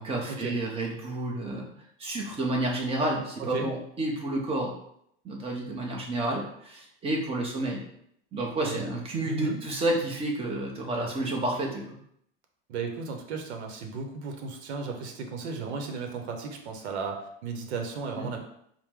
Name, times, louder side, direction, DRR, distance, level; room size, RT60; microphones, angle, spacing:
voice 1, 0.0-1.7 2.0-4.7 5.2-7.8 8.3-11.8 18.2-18.3, right 1 dB, 20° right, -1 dB, 0.8 m, -30 dB
voice 2, 9.3-9.6 12.7-18.4, right 4 dB, 85° right, 4 dB, 0.8 m, -35 dB
4.5 x 2.1 x 3.6 m, 0.71 s
supercardioid pair, 140°, 32 cm